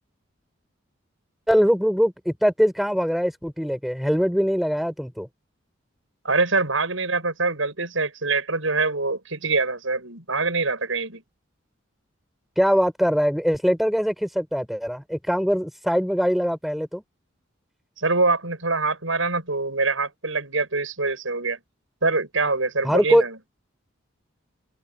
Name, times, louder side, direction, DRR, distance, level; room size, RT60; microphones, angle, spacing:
voice 1, 1.5-5.3 12.6-17.0 22.8-23.2, equal, ahead, 4.3 m, -22 dB
voice 2, 6.2-11.2 18.0-21.6 22.0-23.4, right 3 dB, 85° right, 7.4 m, -24 dB
head